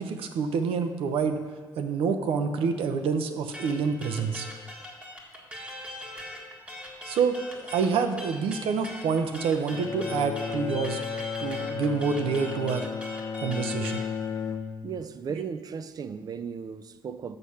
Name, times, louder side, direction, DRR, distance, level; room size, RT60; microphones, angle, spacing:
voice 1, 0.0-1.4 1.8-4.5 7.0-11.0 11.4-12.9 13.4-14.1, right 5 dB, 75° right, 0.7 m, -27 dB
sound 1, 3.5-14.1, left 1 dB, 15° right, 1.8 m, -40 dB
Bowed string instrument, 9.7-15.2, left 6 dB, 35° left, 0.5 m, -34 dB
voice 2, 14.8-17.4, right 6 dB, 45° right, 0.4 m, -36 dB
6.8 x 6.5 x 5.7 m
cardioid pair, 95°, 10 cm